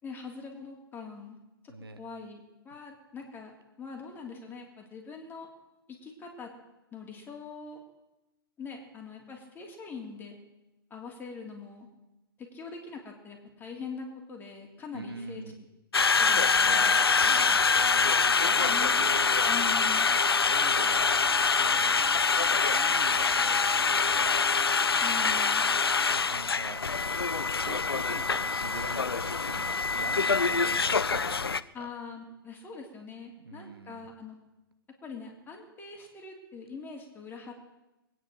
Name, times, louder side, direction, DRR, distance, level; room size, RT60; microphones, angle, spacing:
voice 1, 0.0-1.4 1.6-1.7 2.0-5.5 5.9-6.5 6.9-7.8 8.6-10.3 10.9-11.9 12.4-15.4 16.2-17.0 18.7-18.9 19.5-20.1 25.0-25.6 31.7-34.4 35.0-37.5, left 5 dB, 15° left, 1 dB, 3.1 m, -43 dB
voice 2, 1.7-2.0 14.9-15.6 16.6-19.5 20.1-22.0 22.5-24.5 25.1-25.4 26.1-26.9 27.6-31.9 33.4-34.1, right 3 dB, 80° right, 10 dB, 1.4 m, -44 dB
Conversation, 15.9-31.6, left 5 dB, 90° left, 0.5 m, -25 dB
22.0 x 9.6 x 6.5 m, 0.99 s
figure-of-eight pair, 115°, 12 cm